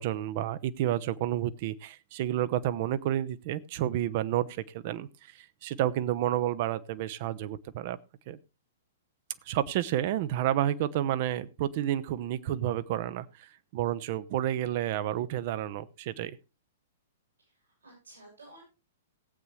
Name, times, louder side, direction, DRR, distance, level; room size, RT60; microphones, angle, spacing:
voice 1, 0.0-4.5 4.7-5.1 5.6-8.0 8.3-8.4 9.5-13.3 13.7-16.4, right 12 dB, 45° right, 15 dB, 0.7 m, -30 dB
voice 2, 17.4-18.6, right 2 dB, 80° right, -1 dB, 7.8 m, -54 dB
18.0 x 8.1 x 3.2 m, 0.29 s
figure-of-eight pair, 110°, 0 cm